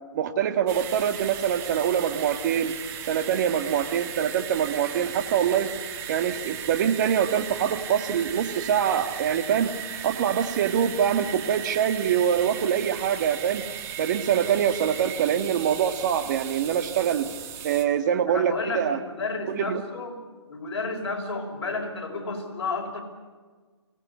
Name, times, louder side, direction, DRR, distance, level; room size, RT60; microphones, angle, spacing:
voice 1, 0.1-2.7 3.1-5.7 6.1-9.7 10.0-13.6 14.0-17.3 17.6-19.0 19.5-19.8, right 8 dB, 40° right, 7 dB, 1.7 m, -24 dB
sound 1, 0.7-17.8, right 9 dB, 15° right, 1.4 m, -37 dB
voice 2, 18.3-20.2 20.5-23.0, left 3 dB, 55° left, 2 dB, 5.8 m, -31 dB
23.5 x 19.0 x 8.4 m, 1.4 s
hypercardioid pair, 150°, 16 cm